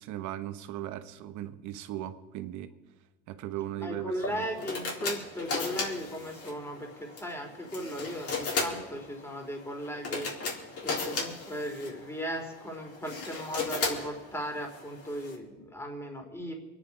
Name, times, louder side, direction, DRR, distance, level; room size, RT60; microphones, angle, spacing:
voice 1, 0.0-2.7 3.3-4.5, right 13 dB, 65° right, 10 dB, 1.3 m, -38 dB
voice 2, 3.8-16.5, equal, 10° left, 2 dB, 3.7 m, -37 dB
sound 1, 4.1-15.3, left 4 dB, 50° left, 4.1 m, -36 dB
24.0 x 10.0 x 4.9 m, 1.1 s
supercardioid pair, 80°, 31 cm